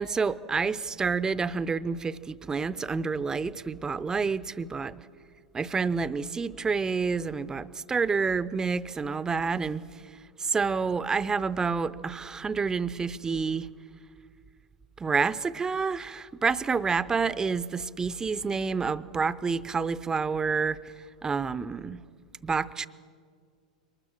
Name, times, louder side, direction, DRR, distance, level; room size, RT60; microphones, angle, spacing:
voice 1, 0.0-5.0 5.5-9.9 10.4-13.7 15.0-20.8 21.2-22.0 22.4-22.9, right 5 dB, 15° right, 0.6 m, -28 dB
23.5 x 20.0 x 7.4 m
figure-of-eight pair, 90°, 4 cm